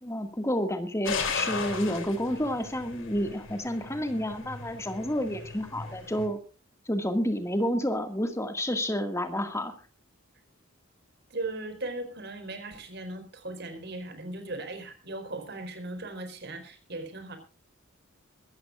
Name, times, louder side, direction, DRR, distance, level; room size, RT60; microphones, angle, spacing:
voice 1, 0.0-6.4 6.9-9.7, equal, 15° left, 6 dB, 2.0 m, -30 dB
sound 1, 1.1-6.3, left 4 dB, 65° left, 3.3 m, -36 dB
voice 2, 11.3-17.4, right 2 dB, 50° right, 6 dB, 4.4 m, -38 dB
23.5 x 14.0 x 2.5 m, 0.33 s
head